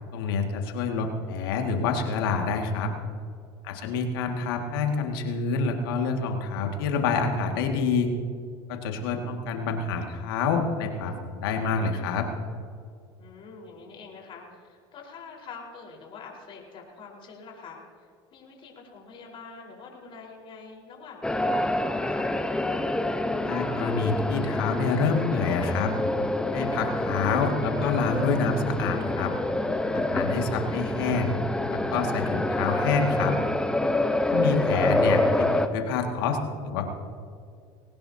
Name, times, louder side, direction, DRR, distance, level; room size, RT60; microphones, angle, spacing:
voice 1, 0.1-2.9 3.6-8.1 8.7-12.3 23.4-25.9 26.5-29.3 29.9-31.4 31.7-33.3 34.3-36.4 36.6-36.9, left 4 dB, 80° left, 3 dB, 2.2 m, -27 dB
voice 2, 3.7-4.0 13.2-22.4 34.2-34.4, left 5 dB, 45° left, -1 dB, 4.7 m, -46 dB
sound 1, 21.2-35.7, left 1 dB, 5° left, 1.0 m, -27 dB
21.5 x 18.0 x 2.9 m, 2.3 s
supercardioid pair, 90°, 12 cm